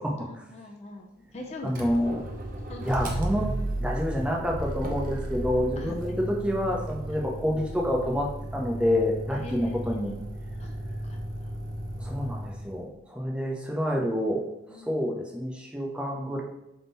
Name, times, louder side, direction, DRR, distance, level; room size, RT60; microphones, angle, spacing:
voice 1, 0.2-1.8 2.3-2.4 2.7-2.9 5.8-6.2 9.4-10.0 10.6-10.7 11.1-11.2 14.7-15.1, left 2 dB, 35° left, 1 dB, 0.4 m, -42 dB
voice 2, 1.6-2.2 2.8-3.5 3.8-10.2 12.0-14.4 14.9-16.4, equal, 5° right, -1 dB, 0.7 m, -28 dB
Motor vehicle (road), 1.7-12.8, right 1 dB, 50° right, 0.7 m, -34 dB
3.6 x 2.9 x 4.0 m, 0.87 s
head